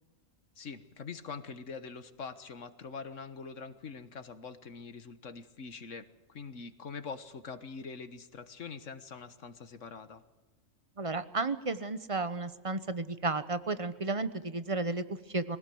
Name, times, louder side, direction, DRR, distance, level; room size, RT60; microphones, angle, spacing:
voice 1, 0.6-10.2, left 5 dB, 70° left, 11 dB, 1.7 m, -44 dB
voice 2, 11.0-15.6, right 3 dB, 25° right, 12 dB, 1.0 m, -33 dB
24.0 x 17.5 x 7.8 m, 1.2 s
omnidirectional pair, 1.4 m